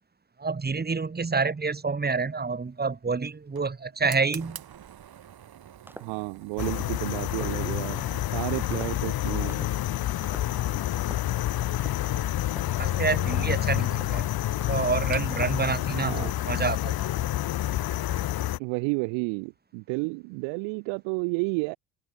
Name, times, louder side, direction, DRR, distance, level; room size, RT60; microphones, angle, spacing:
voice 1, 0.4-4.6 12.8-14.2 14.6-17.0, right 4 dB, 20° right, 1.9 m, -28 dB
Fire, 2.4-18.0, right 10 dB, 55° right, 4.7 m, -50 dB
sound 1, 5.9-6.2 6.6-6.9 7.3-7.6 8.0-8.2 8.7-9.1 9.5-9.7 10.2-10.6 11.0-11.3 11.7-12.1 12.5-12.8 13.2-13.6 13.9-14.2 14.6-15.0 15.3-15.7 16.0-16.3, right 1 dB, 5° right, 4.5 m, -46 dB
voice 2, 6.0-9.6 16.0-16.3 18.6-21.8, right 34 dB, 75° right, 1.0 m, -31 dB
sound 2, 6.6-18.6, left 13 dB, 55° left, 1.2 m, -28 dB
hypercardioid pair, 55°, 45 cm